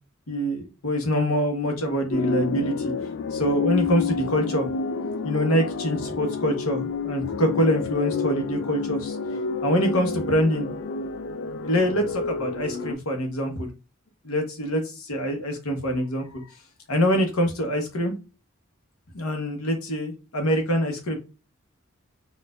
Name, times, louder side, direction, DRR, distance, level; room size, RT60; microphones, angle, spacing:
voice 1, 0.3-2.9 3.3-4.7 5.2-9.2 9.6-10.7 11.6-13.7 14.2-16.4 16.9-18.1 19.1-21.2, equal, 90° left, 4 dB, 0.9 m, -25 dB
sound 1, 2.1-12.9, left 5 dB, 60° left, 0.4 m, -29 dB
4.2 x 2.4 x 2.3 m, 0.30 s
head